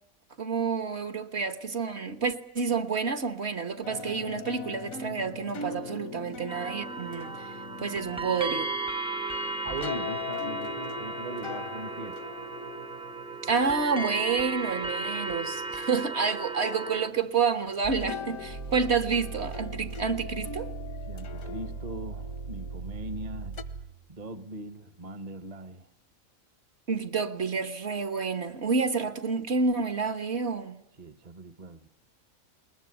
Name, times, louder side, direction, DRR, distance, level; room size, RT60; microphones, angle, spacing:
voice 1, 0.4-7.5 7.8-8.7 13.4-20.7 26.9-30.8, right 5 dB, 55° right, 1.6 m, -29 dB
sound 1, 3.8-16.1 16.6-23.6, left 6 dB, 85° left, 1.6 m, -42 dB
sound 2, 6.5-17.1, right 3 dB, 5° right, 0.7 m, -35 dB
voice 2, 9.6-12.3 21.1-23.7 24.1-25.9 31.0-31.9, right 2 dB, 35° right, 1.0 m, -40 dB
sound 3, 17.8-24.0, right 5 dB, 75° right, 3.5 m, -39 dB
20.5 x 20.5 x 9.6 m
omnidirectional pair, 1.4 m